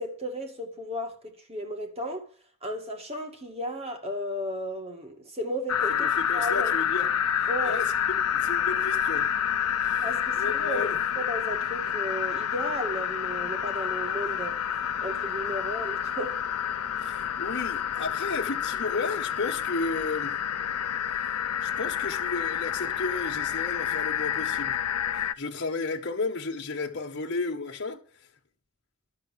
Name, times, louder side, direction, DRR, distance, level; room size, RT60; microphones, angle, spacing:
voice 1, 0.0-2.3 2.6-6.7 7.5-7.8 10.0-14.6 15.0-16.4, equal, 30° right, 2.2 m, -34 dB
sound 1, 5.7-25.3, left 9 dB, 90° left, 0.6 m, -28 dB
voice 2, 6.0-7.1 7.6-9.3 9.8-10.1 10.4-11.0 17.0-20.4 21.6-24.8 25.1-28.0, left 3 dB, 55° left, 1.5 m, -33 dB
12.5 x 7.0 x 7.5 m
head